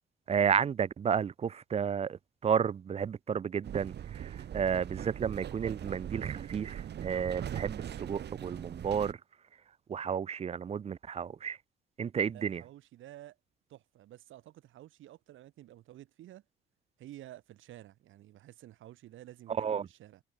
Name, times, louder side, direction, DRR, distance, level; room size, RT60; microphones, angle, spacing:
voice 1, 0.3-9.2 9.9-11.6 12.0-12.6 19.6-19.9, right 7 dB, 30° right, 0.4 m, -32 dB
sound 1, 3.6-9.1, right 10 dB, 60° right, 1.3 m, -41 dB
voice 2, 12.3-13.4 13.7-16.4 17.0-20.2, right 14 dB, 80° right, 1.9 m, -52 dB
cardioid pair, 90°, 20 cm